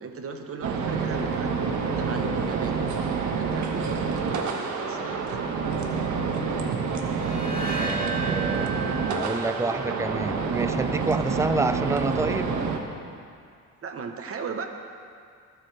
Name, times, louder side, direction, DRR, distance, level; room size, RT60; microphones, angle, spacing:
voice 1, 0.0-2.8 3.4-5.2 11.1-11.3 13.8-14.7, right 5 dB, 50° right, 5 dB, 1.1 m, -37 dB
sound 1, 0.6-12.8, right 5 dB, 70° right, 1.3 m, -28 dB
sound 2, 7.1-10.3, right 4 dB, 30° left, 2.0 m, -34 dB
voice 2, 7.8-12.6, right 3 dB, 10° right, 12 dB, 0.4 m, -28 dB
24.5 x 8.3 x 3.4 m, 2.3 s
cardioid pair, 90°, 30 cm